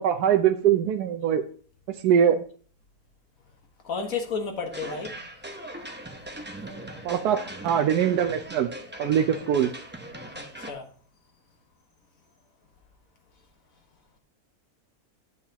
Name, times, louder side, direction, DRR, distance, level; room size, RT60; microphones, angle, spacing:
voice 1, 0.0-1.4 1.9-2.4 7.0-8.7 9.0-9.7, right 9 dB, 85° right, 1.2 m, -22 dB
voice 2, 3.8-5.1 10.3-10.8, left 5 dB, 60° left, 1.7 m, -32 dB
sound 1, 4.7-10.7, right 1 dB, 15° right, 0.4 m, -40 dB
9.3 x 7.2 x 2.9 m
omnidirectional pair, 1.7 m